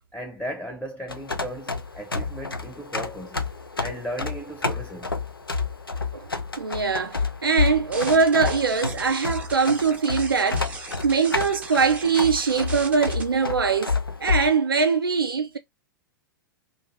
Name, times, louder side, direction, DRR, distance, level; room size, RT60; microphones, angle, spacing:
voice 1, 0.1-3.4 3.8-5.1, equal, 10° left, 1.0 m, -36 dB
sound 1, 1.1-14.5, left 4 dB, 90° left, 0.4 m, -30 dB
voice 2, 6.6-15.6, right 5 dB, 85° right, 0.4 m, -22 dB
sound 2, 7.9-13.2, right 4 dB, 10° right, 0.6 m, -38 dB
2.5 x 2.4 x 3.2 m
figure-of-eight pair, 100°, 12 cm